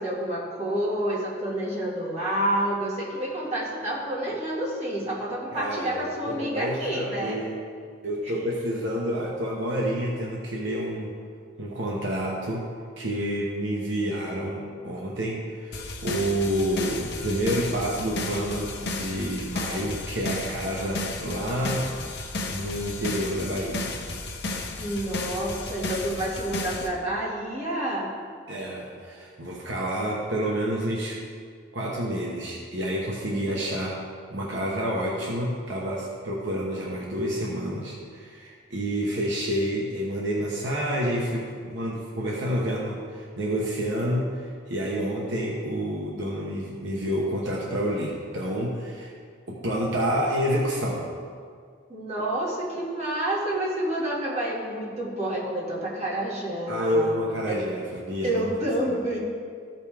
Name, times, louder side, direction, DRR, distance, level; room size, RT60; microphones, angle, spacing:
voice 1, 0.0-7.4 24.8-28.1 33.3-33.4 51.9-57.1 57.5-57.6 58.2-59.2, right 1 dB, 35° right, -6 dB, 2.1 m, -29 dB
voice 2, 5.5-7.6 8.0-11.1 11.6-12.6 13.0-22.2 22.5-24.0 28.5-31.2 31.7-34.0 34.3-49.1 49.5-51.1 56.7-58.5 58.9-59.0, equal, 65° right, -3 dB, 1.0 m, -29 dB
sound 1, 15.7-26.9, left 2 dB, 55° left, 0.9 m, -33 dB
13.5 x 5.4 x 3.5 m, 2.1 s
head